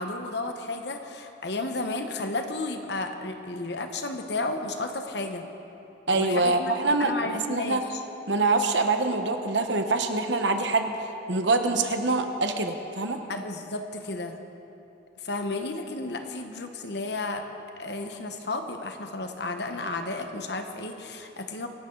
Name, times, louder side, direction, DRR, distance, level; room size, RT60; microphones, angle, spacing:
voice 1, 0.0-5.4 6.1-6.7 7.0-8.0 13.3-14.4 15.2-17.4 17.8-21.7, left 2 dB, 60° left, 6 dB, 1.2 m, -33 dB
voice 2, 6.1-7.1 7.5-7.8 8.3-10.9 11.3-13.2, right 3 dB, 70° right, 6 dB, 1.2 m, -24 dB
25.0 x 12.0 x 4.0 m, 2.9 s
head